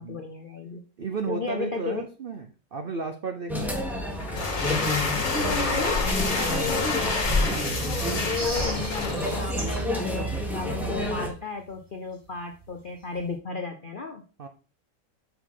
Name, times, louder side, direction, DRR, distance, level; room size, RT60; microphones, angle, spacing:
voice 1, 0.0-0.8 1.3-2.0 5.5-7.3 8.1-14.2, left 4 dB, 65° left, 4 dB, 0.5 m, -34 dB
voice 2, 1.0-3.8 5.3-5.8 14.4-14.5, right 5 dB, 75° right, 6 dB, 0.5 m, -34 dB
sound 1, 3.5-11.3, left 1 dB, ahead, 0.9 m, -29 dB
sound 2, 4.2-9.9, left 4 dB, 85° left, 2.4 m, -29 dB
sound 3, 8.3-9.9 10.3-11.8 12.1-12.2 12.5-12.8 13.0-13.3, right 1 dB, 30° right, 2.7 m, -39 dB
6.1 x 5.7 x 3.7 m, 0.36 s
omnidirectional pair, 1.9 m